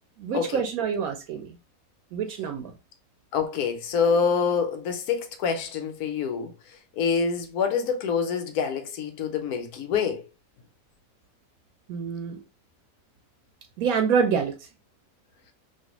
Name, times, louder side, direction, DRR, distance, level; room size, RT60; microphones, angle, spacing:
voice 1, 0.2-1.6 2.1-2.7 11.9-12.4 13.8-14.7, right 6 dB, 80° right, 1.0 m, -26 dB
voice 2, 3.3-6.5 7.0-10.2, left 6 dB, 85° left, 1.2 m, -26 dB
3.2 x 2.5 x 2.8 m
omnidirectional pair, 1.5 m